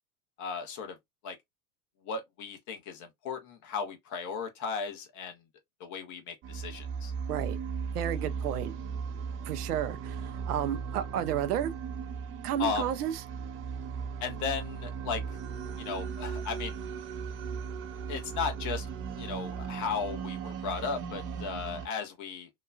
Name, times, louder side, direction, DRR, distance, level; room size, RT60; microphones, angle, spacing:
voice 1, 0.4-1.0 1.2-1.4 2.0-5.4 5.8-7.1 12.6-12.9 14.2-15.2 15.8-16.8 18.1-18.9 19.1-22.5, left 5 dB, 40° left, 0.9 m, -35 dB
sound 1, 6.4-21.9, right 6 dB, 30° right, 0.5 m, -37 dB
voice 2, 7.9-8.7 9.5-11.7 12.4-13.1, right 10 dB, 80° right, 0.6 m, -32 dB
2.9 x 2.2 x 2.4 m
hypercardioid pair, 85°, 46 cm